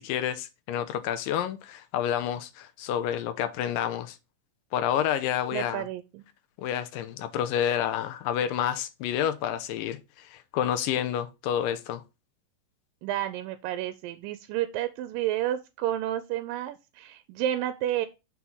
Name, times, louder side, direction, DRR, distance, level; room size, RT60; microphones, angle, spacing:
voice 1, 0.0-4.2 4.7-5.9 6.6-12.0, left 10 dB, 85° left, 2.4 m, -29 dB
voice 2, 5.5-6.2 13.0-18.1, right 12 dB, 90° right, 2.3 m, -31 dB
6.0 x 4.4 x 5.4 m
omnidirectional pair, 3.9 m